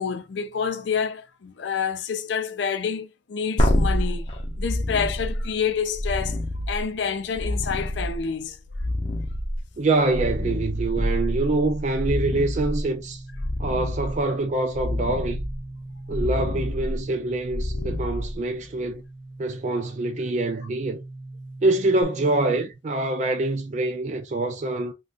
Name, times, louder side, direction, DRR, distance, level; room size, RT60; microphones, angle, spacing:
voice 1, 0.0-4.3 4.6-6.4 6.7-8.6 17.7-18.0, left 6 dB, 70° left, 0.4 m, -28 dB
sound 1, 3.6-18.9 22.0-22.1, left 1 dB, 30° left, 0.6 m, -28 dB
voice 2, 9.8-13.2 13.6-15.4 16.1-19.0 19.4-21.0 21.6-24.9, right 2 dB, 40° right, 0.4 m, -25 dB
sound 2, 12.9-22.7, right 2 dB, 75° right, 0.7 m, -41 dB
2.5 x 2.3 x 3.6 m
head